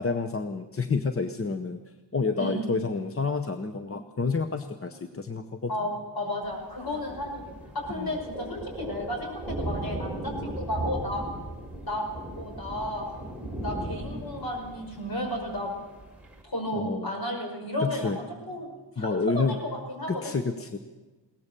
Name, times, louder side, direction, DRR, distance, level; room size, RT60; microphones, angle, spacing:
voice 1, 0.0-1.8 2.1-5.7 7.9-8.2 16.7-17.2 17.8-18.2 19.0-19.6 20.1-20.8, left 4 dB, 30° left, 7 dB, 0.7 m, -29 dB
voice 2, 2.4-2.7 5.7-11.3 11.8-13.1 13.6-15.7 16.4-18.1 18.5-18.7 19.0-20.2, left 1 dB, 50° left, 1 dB, 5.5 m, -33 dB
Thunder, 6.4-16.4, right 1 dB, 5° right, 3.1 m, -37 dB
21.5 x 18.0 x 6.8 m, 1.2 s
wide cardioid pair, 180°, 45 cm